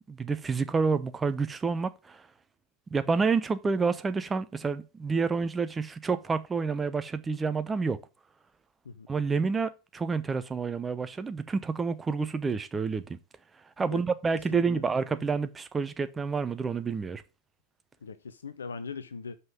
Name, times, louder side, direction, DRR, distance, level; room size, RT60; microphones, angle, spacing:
voice 1, 0.1-2.2 2.9-8.0 9.1-13.2 13.8-17.2, right 4 dB, 15° right, 0.6 m, -29 dB
voice 2, 14.5-14.8 18.0-19.4, left 5 dB, 70° left, 0.5 m, -40 dB
5.5 x 5.4 x 6.0 m
figure-of-eight pair, 90°, 0 cm